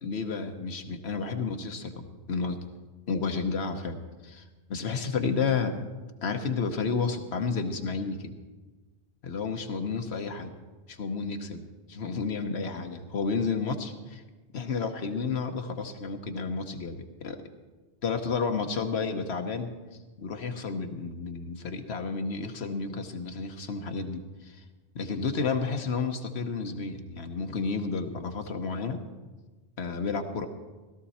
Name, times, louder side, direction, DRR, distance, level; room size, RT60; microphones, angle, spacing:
voice 1, 0.0-2.6 3.1-4.4 4.7-5.8 6.2-8.3 9.2-10.5 10.9-14.2 14.5-17.4 18.0-19.7 20.2-24.6 24.9-29.0 29.8-30.5, left 5 dB, 75° left, 6 dB, 1.2 m, -31 dB
16.5 x 13.0 x 4.2 m, 1.2 s
omnidirectional pair, 1.1 m